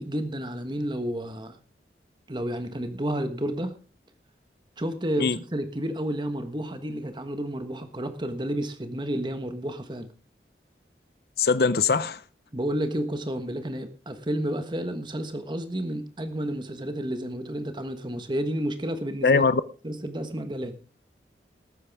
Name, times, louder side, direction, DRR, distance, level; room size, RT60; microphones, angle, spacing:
voice 1, 0.0-1.6 2.3-3.7 4.8-10.1 12.5-19.4 19.8-20.8, right 1 dB, 25° right, 1.3 m, -31 dB
voice 2, 11.4-12.2 19.2-19.6, left 4 dB, 60° left, 0.6 m, -21 dB
19.0 x 9.4 x 3.5 m
head